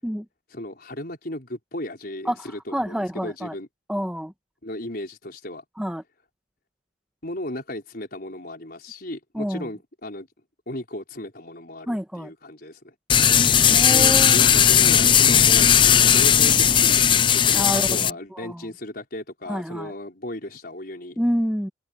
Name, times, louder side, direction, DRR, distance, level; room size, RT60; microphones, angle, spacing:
voice 1, 0.5-3.7 4.6-5.6 7.2-10.3 10.7-12.9 13.9-21.2, left 1 dB, 50° left, 5.5 m, -35 dB
voice 2, 2.2-3.5 3.9-4.3 5.8-6.0 9.3-9.7 11.9-12.3 13.7-14.5 15.9-16.2 17.5-18.6 19.5-19.9 21.2-21.7, equal, 5° right, 1.4 m, -28 dB
sound 1, 13.1-18.1, left 8 dB, 25° left, 0.4 m, -17 dB
open air
head